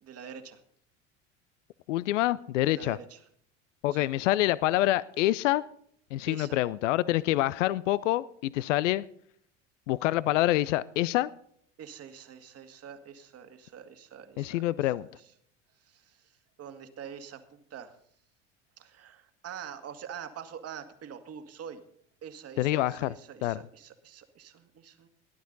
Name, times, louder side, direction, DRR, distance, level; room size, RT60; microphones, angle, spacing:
voice 1, 0.0-0.6 2.7-3.2 3.9-4.1 6.3-6.6 11.8-15.3 15.8-18.0 18.8-21.8 22.2-25.1, right 8 dB, 40° right, 7 dB, 1.9 m, -45 dB
voice 2, 1.9-3.0 3.8-5.6 6.1-9.0 9.9-11.3 14.4-15.1 22.6-23.1 23.4-23.6, left 16 dB, 70° left, 19 dB, 0.5 m, -26 dB
17.5 x 11.5 x 4.0 m, 0.65 s
hypercardioid pair, 75°, 38 cm